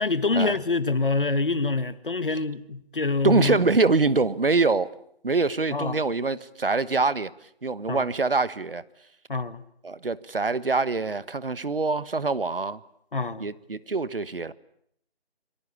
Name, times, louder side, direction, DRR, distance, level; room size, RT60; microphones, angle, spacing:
voice 1, 0.0-3.6 5.7-6.0 7.9-8.0 9.3-9.6 13.1-13.5, left 3 dB, 55° left, 1.7 m, -26 dB
voice 2, 3.2-4.9 5.2-7.3 7.6-8.8 9.8-12.8 13.4-14.5, right 3 dB, 65° right, 1.4 m, -24 dB
26.5 x 23.5 x 8.4 m
figure-of-eight pair, 170°, 31 cm